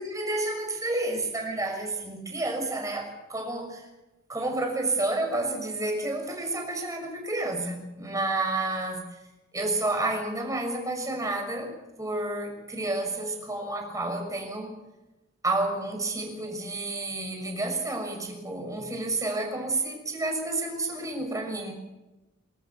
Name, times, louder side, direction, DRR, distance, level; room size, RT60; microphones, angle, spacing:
voice 1, 0.0-3.9 4.3-9.1 9.5-14.8 15.4-21.7, right 2 dB, 15° right, 3 dB, 6.5 m, -30 dB
28.0 x 13.5 x 8.6 m, 1.0 s
head